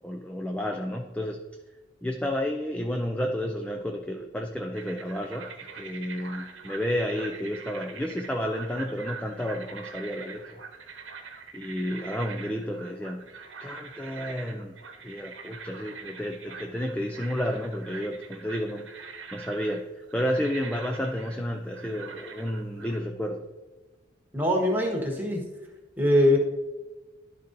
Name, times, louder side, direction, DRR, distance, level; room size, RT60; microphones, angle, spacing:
voice 1, 0.0-1.4 2.0-5.5 5.8-10.6 11.5-13.3 13.6-14.8 15.0-18.9 19.3-23.4, equal, 5° left, 3 dB, 0.4 m, -31 dB
sound 1, 4.7-23.0, right 5 dB, 90° right, 0.9 m, -43 dB
voice 2, 24.3-25.4 26.0-26.4, left 1 dB, 10° right, 0 dB, 1.3 m, -22 dB
11.5 x 4.0 x 3.8 m, 1.2 s
head